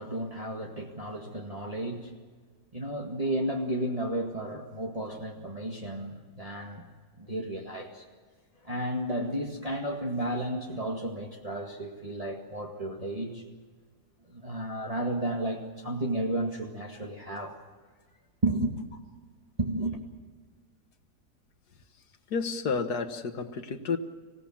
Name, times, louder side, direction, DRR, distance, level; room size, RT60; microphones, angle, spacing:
voice 1, 0.0-2.2 2.7-6.8 7.2-8.0 8.6-13.4 14.3-17.6 18.4-19.0 19.6-20.0, right 1 dB, 20° right, -1 dB, 2.0 m, -33 dB
voice 2, 22.3-24.0, left 5 dB, 70° left, 8 dB, 1.9 m, -30 dB
26.0 x 17.5 x 7.4 m, 1.5 s
omnidirectional pair, 1.8 m